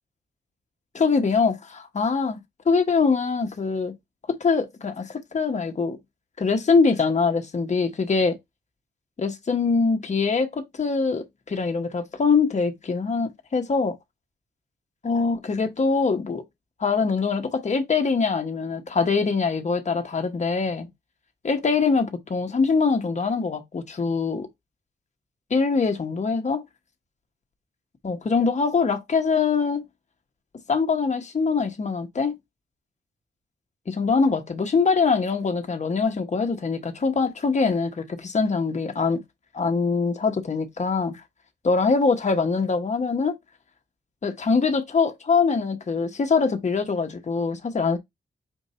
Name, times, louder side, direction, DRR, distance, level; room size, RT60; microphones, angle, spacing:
voice 1, 0.9-2.4 2.7-3.9 4.3-6.0 6.4-8.4 9.2-14.0 15.0-16.4 16.8-20.9 21.4-24.5 25.5-26.6 28.0-29.8 30.7-32.4 33.9-39.2 39.5-41.2 41.6-43.4 44.2-48.0, left 4 dB, 40° left, 1.0 m, -23 dB
4.6 x 2.6 x 4.2 m
cardioid pair, 75°, 19 cm